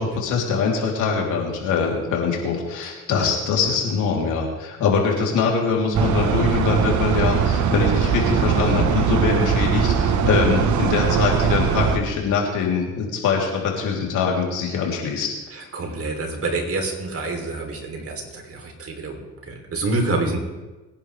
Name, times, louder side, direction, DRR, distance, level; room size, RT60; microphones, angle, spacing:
voice 1, 0.0-15.3 15.6-15.7, left 5 dB, 85° left, -1 dB, 3.5 m, -23 dB
sound 1, 5.9-12.0, right 7 dB, 70° right, 1.3 m, -20 dB
voice 2, 15.5-20.4, right 2 dB, 50° right, 3 dB, 3.4 m, -27 dB
22.5 x 11.0 x 3.5 m, 1.1 s
cardioid pair, 90°, 30 cm